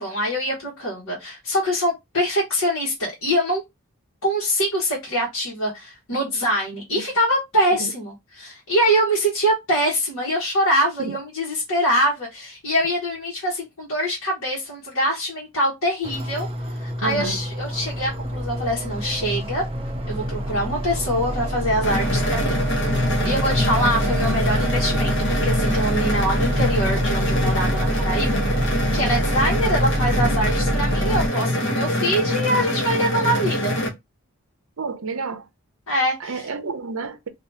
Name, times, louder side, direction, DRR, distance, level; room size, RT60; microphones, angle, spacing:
voice 1, 0.0-3.6 4.2-19.6 20.1-23.0 23.2-33.7 35.9-36.4, equal, 70° left, 1.3 m, -24 dB
sound 1, 16.0-31.3, right 1 dB, 25° right, 0.5 m, -26 dB
voice 2, 17.0-17.4 34.8-35.5 36.2-37.3, right 4 dB, 70° right, 0.6 m, -30 dB
sound 2, 21.8-33.9, left 1 dB, 50° left, 1.0 m, -24 dB
2.7 x 2.7 x 3.4 m
head